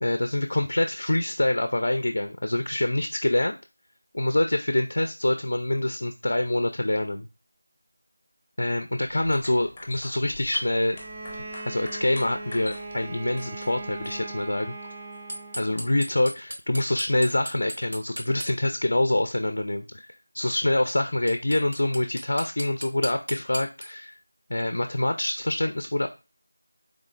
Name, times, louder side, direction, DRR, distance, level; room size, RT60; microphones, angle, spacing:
voice 1, 0.0-3.6 4.1-7.3 8.6-11.0 11.6-14.7 15.6-20.1 20.3-24.2 24.5-26.1, left 1 dB, 55° left, 7 dB, 0.4 m, -25 dB
sound 1, 9.1-14.4, left 1 dB, 20° left, 0.7 m, -45 dB
Bowed string instrument, 10.9-16.1, right 2 dB, 15° right, 0.4 m, -39 dB
sound 2, 15.3-18.5 20.9-21.0 21.3-23.9, equal, 80° right, 1.0 m, -35 dB
3.7 x 3.0 x 2.5 m, 0.28 s
figure-of-eight pair, 175°, 0 cm